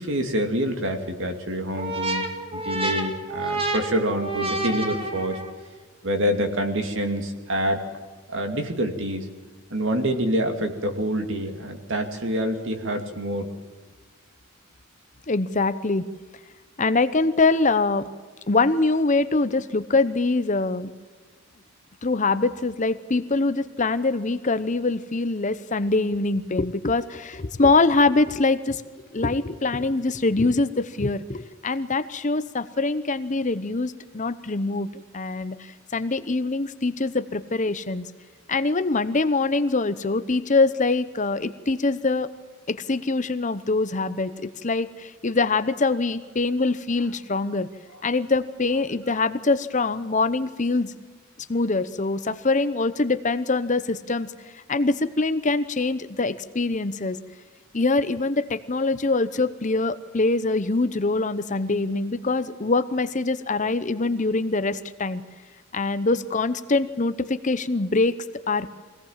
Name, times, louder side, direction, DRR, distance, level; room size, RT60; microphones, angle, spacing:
voice 1, 0.0-2.3 2.5-5.4 6.0-7.8 8.3-9.3 9.7-13.5, equal, 55° right, 6 dB, 2.5 m, -26 dB
sound 1, 1.8-5.7, right 2 dB, 25° right, 2.1 m, -29 dB
voice 2, 15.3-16.0 16.8-18.1 18.5-20.9 22.0-28.8 29.1-34.9 35.1-38.1 38.5-42.3 42.7-47.7 48.0-50.9 51.5-57.2 57.7-65.2 65.7-68.1 68.5-68.7, left 3 dB, 35° left, 12 dB, 0.8 m, -24 dB
24.0 x 18.0 x 7.4 m, 1.4 s
head